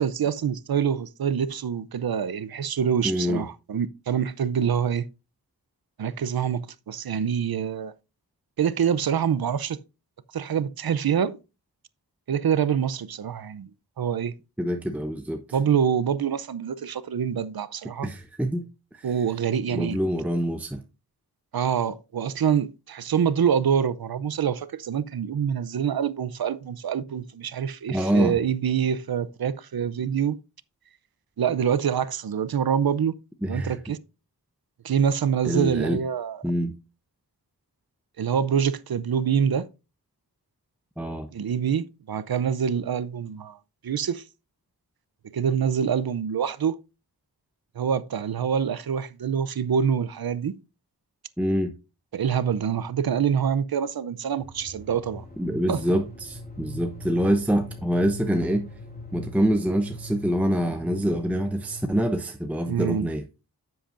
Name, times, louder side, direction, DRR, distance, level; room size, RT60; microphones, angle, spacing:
voice 1, 0.0-5.1 6.0-7.9 8.6-9.8 10.3-11.4 12.3-13.7 14.0-14.3 15.5-18.1 19.0-20.0 21.5-30.4 31.4-33.2 33.5-34.0 34.8-36.4 38.2-39.7 41.3-43.6 43.8-44.2 45.3-46.8 47.8-50.6 52.1-55.2 55.7-55.8 62.7-63.1, right 8 dB, 70° right, 0.6 m, -25 dB
voice 2, 3.0-3.5 14.6-15.4 18.0-18.7 18.9-19.1 19.7-20.8 27.9-28.4 33.4-33.8 35.4-36.0 36.4-36.7 41.0-41.3 51.4-51.7 55.4-58.7 59.1-63.2, equal, 5° right, 0.7 m, -25 dB
sound 1, 54.4-62.2, equal, 25° left, 3.1 m, -41 dB
10.0 x 7.8 x 2.5 m
wide cardioid pair, 80°, 39 cm